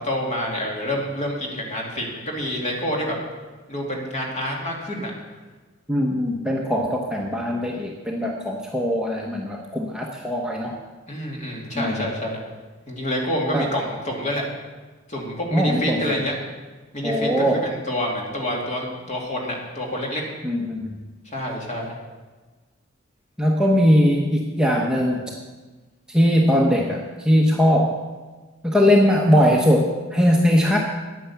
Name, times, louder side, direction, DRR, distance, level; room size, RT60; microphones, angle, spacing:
voice 1, 0.0-3.1 3.7-5.1 11.1-12.4 12.9-14.5 15.1-16.3 16.9-20.2 21.3-21.9, left 1 dB, 35° left, -1 dB, 2.6 m, -27 dB
voice 2, 5.9-10.7 11.7-12.0 13.5-13.7 15.5-16.2 17.0-17.7 20.4-21.0 23.4-25.2 26.1-28.0 28.6-30.8, equal, 5° right, -2 dB, 1.0 m, -20 dB
10.0 x 9.2 x 7.1 m, 1.3 s
head